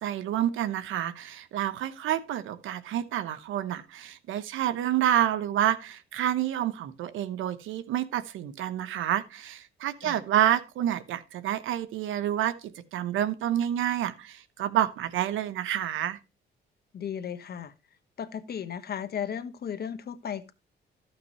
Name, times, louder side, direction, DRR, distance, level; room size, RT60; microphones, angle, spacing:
voice 1, 0.0-12.6 12.9-16.2, right 11 dB, 85° right, 1.0 m, -28 dB
voice 2, 16.9-17.7 18.2-20.5, left 8 dB, 50° left, 1.2 m, -35 dB
14.0 x 5.9 x 3.0 m
cardioid pair, 90°, 20 cm